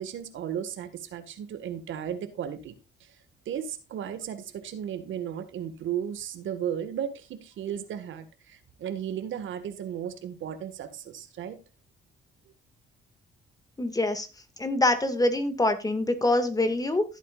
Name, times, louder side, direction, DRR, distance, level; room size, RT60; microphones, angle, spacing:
voice 1, 0.0-2.7 3.5-11.6, right 9 dB, 75° right, 10 dB, 1.9 m, -35 dB
voice 2, 13.8-14.3 14.6-17.0, left 2 dB, 20° left, 9 dB, 2.1 m, -25 dB
15.5 x 8.4 x 2.5 m, 0.27 s
cardioid pair, 90°, 20 cm